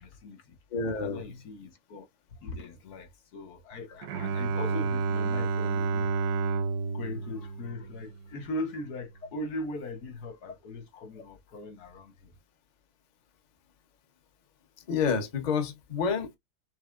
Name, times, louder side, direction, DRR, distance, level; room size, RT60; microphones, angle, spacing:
voice 1, 0.0-0.6 1.0-6.1 6.9-12.3, left 2 dB, 75° left, 1.6 m, -40 dB
voice 2, 0.7-1.2 14.9-16.4, left 5 dB, 35° left, 0.9 m, -29 dB
Bowed string instrument, 4.0-8.5, right 4 dB, 75° right, 1.2 m, -30 dB
6.2 x 3.2 x 2.4 m
omnidirectional pair, 1.7 m